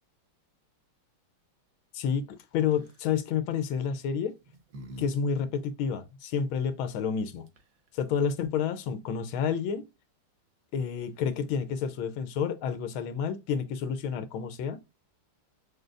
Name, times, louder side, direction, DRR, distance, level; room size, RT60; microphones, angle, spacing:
voice 1, 1.9-4.4 5.0-7.5 7.9-9.9 10.7-14.8, left 7 dB, 80° left, 1.5 m, -30 dB
sound 1, 2.6-3.1 4.0-5.1 5.4-5.5 7.2-7.3 7.5-7.9, equal, 55° right, 1.1 m, -46 dB
6.5 x 2.2 x 2.4 m
omnidirectional pair, 2.2 m